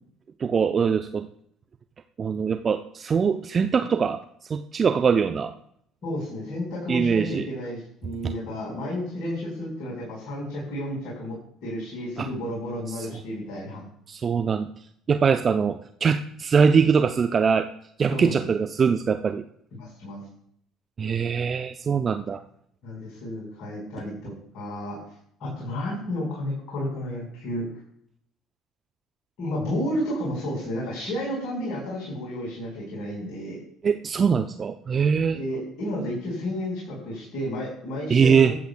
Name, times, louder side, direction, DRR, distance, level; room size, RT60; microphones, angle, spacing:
voice 1, 0.4-1.3 2.2-4.2 4.5-5.5 6.9-7.5 12.2-12.3 12.9-13.1 14.1-14.7 15.1-17.7 18.0-19.4 21.0-22.4 33.8-35.4 38.1-38.5, right 6 dB, 35° right, 8 dB, 0.6 m, -22 dB
voice 2, 6.0-11.4 11.6-13.8 18.1-18.4 19.7-20.2 22.8-25.0 25.4-27.7 29.4-33.6 35.3-38.5, left 1 dB, 55° left, -4 dB, 4.8 m, -32 dB
21.5 x 8.3 x 2.3 m, 0.67 s
figure-of-eight pair, 55°, 0 cm